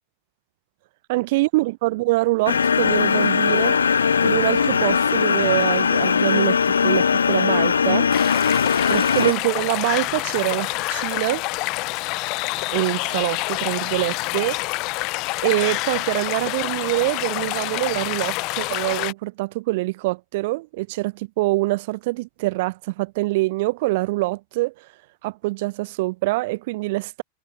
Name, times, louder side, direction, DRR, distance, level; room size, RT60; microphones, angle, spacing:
voice 1, 1.1-3.8 4.2-8.1 8.9-11.4 12.7-14.6 15.4-24.9 25.2-27.2, right 21 dB, 50° right, 1.7 m, -24 dB
sound 1, 2.5-9.3, left 6 dB, 70° left, 0.3 m, -19 dB
sound 2, 8.1-19.1, left 25 dB, 40° left, 4.6 m, -27 dB
figure-of-eight pair, 90°, 0 cm